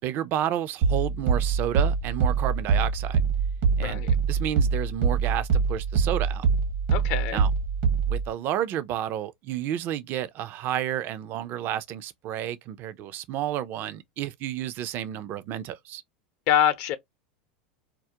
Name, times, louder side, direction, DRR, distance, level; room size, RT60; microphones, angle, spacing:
voice 1, 0.0-3.2 3.8-4.0 4.3-6.5 7.3-7.5 8.1-16.0, right 11 dB, 45° right, 0.4 m, -31 dB
sound 1, 0.8-8.3, right 5 dB, 65° right, 0.8 m, -24 dB
voice 2, 3.8-4.1 6.9-7.4 16.5-17.0, left 10 dB, 60° left, 0.6 m, -24 dB
2.2 x 2.1 x 2.8 m
hypercardioid pair, 105°, 5 cm